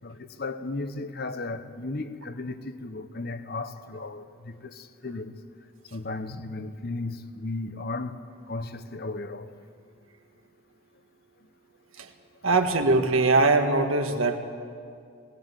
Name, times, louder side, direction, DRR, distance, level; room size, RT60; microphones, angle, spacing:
voice 1, 0.0-5.3 5.9-9.5, left 2 dB, 45° left, 1.0 m, -35 dB
voice 2, 12.4-14.4, right 3 dB, 75° right, 1.5 m, -21 dB
19.0 x 18.5 x 8.1 m
head